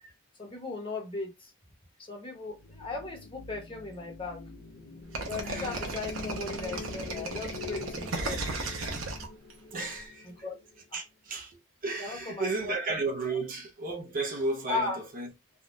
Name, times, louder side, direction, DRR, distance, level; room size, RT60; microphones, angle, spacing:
voice 1, 0.4-1.5 2.1-4.4 5.2-8.4 10.2-10.6 10.9-11.0 12.0-12.8 13.2-13.4 14.7-15.0, left 3 dB, 25° left, 0.9 m, -37 dB
sound 1, 2.5-10.8, left 4 dB, 60° left, 0.5 m, -44 dB
sound 2, 5.1-9.9, right 2 dB, 75° right, 0.8 m, -35 dB
voice 2, 5.4-5.8 9.7-10.3 10.9-15.3, right 3 dB, 40° right, 0.6 m, -33 dB
3.5 x 2.2 x 2.5 m
head